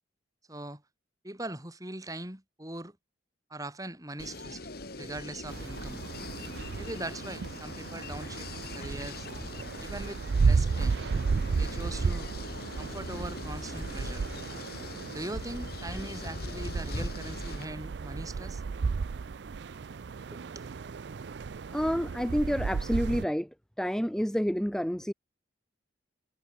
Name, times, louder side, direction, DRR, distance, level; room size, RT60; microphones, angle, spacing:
voice 1, 0.5-0.8 1.2-3.0 3.5-4.6 5.0-6.0 6.8-9.3 9.8-11.0 11.6-12.3 12.8-14.2 15.1-18.6 20.3-20.7, right 1 dB, 20° right, 3.8 m, -41 dB
sound 1, 4.2-17.7, left 2 dB, 50° left, 2.8 m, -41 dB
sound 2, 5.5-23.2, right 4 dB, 60° right, 0.4 m, -33 dB
voice 2, 21.7-23.5 23.8-25.1, equal, 5° left, 0.7 m, -29 dB
head